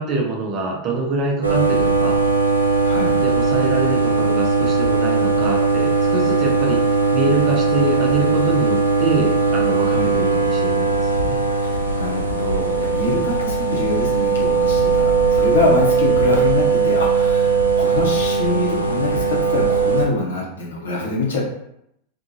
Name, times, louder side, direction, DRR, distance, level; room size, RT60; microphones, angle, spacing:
voice 1, 0.0-2.2 3.2-11.4 13.0-13.3, right 3 dB, 35° right, 0 dB, 0.6 m, -25 dB
sound 1, 1.4-20.1, right 4 dB, 85° right, 0.4 m, -19 dB
voice 2, 2.8-3.2 9.8-10.1 11.6-21.4, left 3 dB, 65° left, -3 dB, 0.8 m, -24 dB
2.7 x 2.3 x 2.6 m, 0.77 s
figure-of-eight pair, 90°, 0 cm